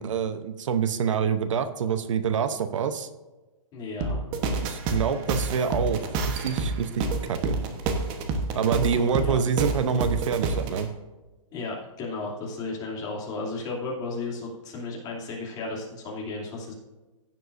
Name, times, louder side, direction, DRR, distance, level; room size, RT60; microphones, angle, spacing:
voice 1, 0.0-3.1 4.6-6.0 6.3-7.6 8.5-10.9, right 7 dB, 65° right, 11 dB, 0.9 m, -26 dB
voice 2, 3.7-4.2 8.9-9.4 11.5-16.7, left 3 dB, 20° left, -3 dB, 2.8 m, -34 dB
sound 1, 4.0-10.8, right 3 dB, 30° right, 1.2 m, -28 dB
16.0 x 7.7 x 2.6 m, 1.2 s
hypercardioid pair, 155°, 17 cm